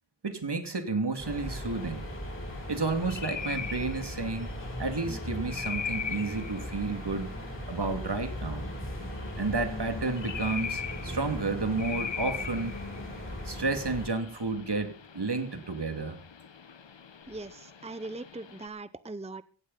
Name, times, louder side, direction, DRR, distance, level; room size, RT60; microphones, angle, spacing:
voice 1, 0.2-2.0 2.7-4.5 4.8-7.3 7.7-8.6 9.4-12.7 13.4-16.2, right 3 dB, 60° right, 8 dB, 2.5 m, -31 dB
sound 1, 1.2-14.1, left 1 dB, 25° left, 7.4 m, -38 dB
sound 2, 1.5-18.7, left 7 dB, 70° left, 1.1 m, -42 dB
voice 2, 17.3-19.4, right 2 dB, 15° right, 16 dB, 0.6 m, -40 dB
17.0 x 15.0 x 4.1 m, 0.40 s
wide cardioid pair, 60°, 45 cm